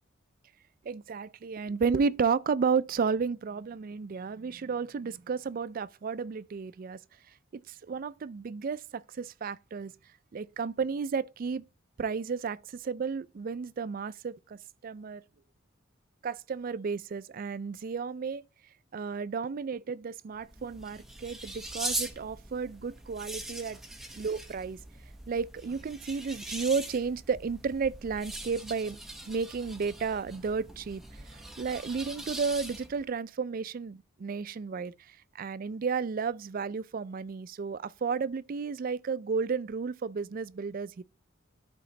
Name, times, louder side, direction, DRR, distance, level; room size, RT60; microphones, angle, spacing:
voice 1, 0.8-7.0 7.5-9.9 10.3-11.6 12.0-15.2 16.2-18.4 18.9-23.8 24.2-24.8 25.3-29.0 29.3-41.0, right 5 dB, 45° right, 0.3 m, -32 dB
sound 1, 20.3-33.1, right 1 dB, ahead, 0.8 m, -41 dB
11.0 x 3.9 x 3.2 m
head